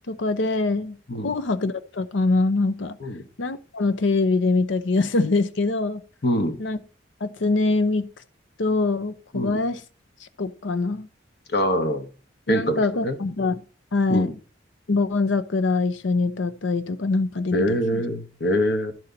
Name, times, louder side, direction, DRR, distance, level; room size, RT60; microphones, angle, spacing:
voice 1, 0.1-1.0 1.2-3.0 3.4-6.0 6.6-6.8 7.2-8.1 8.6-9.8 10.2-11.1 12.5-13.6 13.9-14.4 14.9-17.8, left 3 dB, 85° left, 0.7 m, -23 dB
voice 2, 6.2-6.6 9.3-9.6 11.5-12.1 12.5-13.2 14.1-14.3 17.5-18.9, equal, 60° left, 1.2 m, -24 dB
11.0 x 4.3 x 5.1 m
head